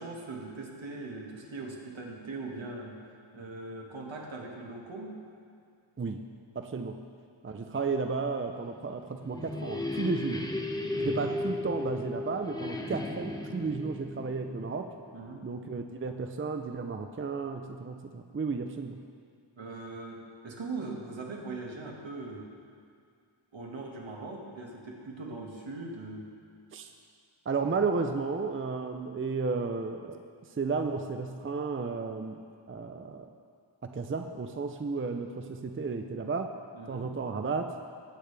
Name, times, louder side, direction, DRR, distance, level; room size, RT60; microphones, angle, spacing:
voice 1, 0.0-5.2 7.5-7.7 10.8-11.1 15.1-15.5 19.6-22.5 23.5-26.3 36.7-37.1, right 3 dB, 70° right, -1 dB, 1.9 m, -41 dB
voice 2, 6.5-7.0 7.4-10.5 11.0-14.9 15.4-19.0 26.7-26.9 27.5-30.2 30.6-32.4 32.7-33.3 33.8-36.5 36.9-37.7, right 4 dB, 25° right, 6 dB, 0.6 m, -33 dB
sound 1, 8.8-15.5, left 2 dB, 10° left, 0.8 m, -35 dB
20.0 x 8.5 x 3.4 m, 2.3 s
wide cardioid pair, 90°, 47 cm